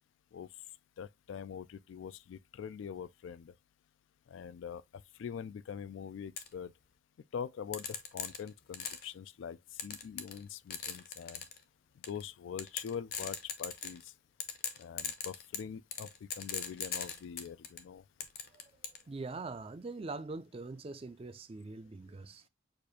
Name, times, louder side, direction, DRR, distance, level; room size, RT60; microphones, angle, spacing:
voice 1, 1.0-3.5 4.3-4.8 5.2-6.7 7.3-11.5 12.1-14.1 14.8-18.0, left 7 dB, 80° left, 0.3 m, -43 dB
sound 1, 6.4-6.5 7.7-9.1 9.8-10.4 10.7-11.6 12.0-12.2 12.6-14.1 14.4-17.8 18.2-19.0, left 7 dB, 50° left, 0.7 m, -39 dB
voice 2, 19.1-22.5, right 3 dB, 30° right, 0.4 m, -43 dB
6.5 x 2.5 x 2.7 m
head